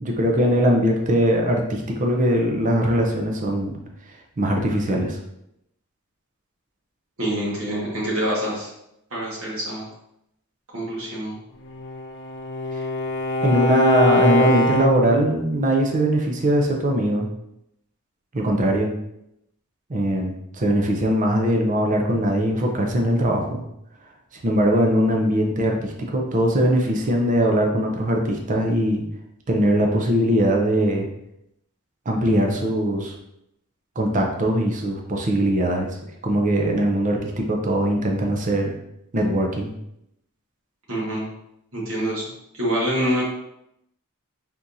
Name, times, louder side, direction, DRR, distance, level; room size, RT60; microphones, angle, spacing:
voice 1, 0.0-3.8 4.4-5.2 13.4-17.3 18.3-18.9 19.9-23.6 24.4-29.0 29.5-31.1 32.1-33.1 34.0-35.9 36.2-38.7 39.1-39.7, equal, 35° right, 1 dB, 0.6 m, -21 dB
voice 2, 7.2-8.7 9.1-9.8 10.7-11.4 40.9-41.3 41.7-43.2, equal, 70° right, -5 dB, 1.6 m, -26 dB
Bowed string instrument, 11.6-15.3, left 2 dB, 60° left, 0.5 m, -23 dB
4.4 x 3.6 x 2.7 m, 0.80 s
head